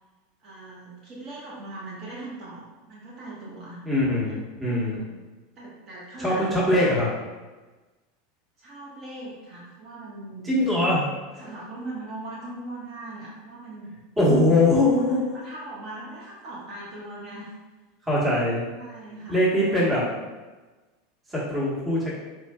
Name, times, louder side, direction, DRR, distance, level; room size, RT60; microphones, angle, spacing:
voice 1, 0.4-3.8 4.2-4.3 4.7-5.1 5.6-6.9 8.6-10.8 11.4-13.9 15.3-17.5 18.7-20.1, right 2 dB, 40° right, -7 dB, 1.1 m, -40 dB
voice 2, 3.8-5.0 6.2-7.1 10.4-11.0 14.2-15.2 18.1-18.6 19.3-20.0 21.3-22.2, left 1 dB, 15° right, -7 dB, 1.2 m, -22 dB
4.4 x 2.5 x 2.2 m, 1.2 s
hypercardioid pair, 90°, 0 cm